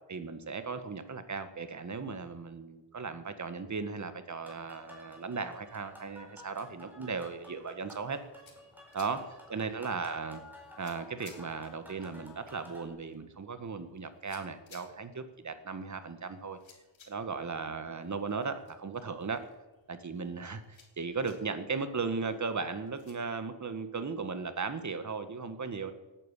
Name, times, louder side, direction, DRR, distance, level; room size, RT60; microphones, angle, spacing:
voice 1, 0.1-8.2 8.9-9.2 9.5-10.4 10.8-16.6 17.1-19.4 19.9-25.9, right 4 dB, 40° right, 10 dB, 1.6 m, -37 dB
sound 1, 4.4-12.9, left 1 dB, 5° right, 4.5 m, -53 dB
sound 2, 8.0-23.1, left 5 dB, 85° left, 3.5 m, -63 dB
18.5 x 9.3 x 8.4 m, 1.1 s
wide cardioid pair, 140°, 45 cm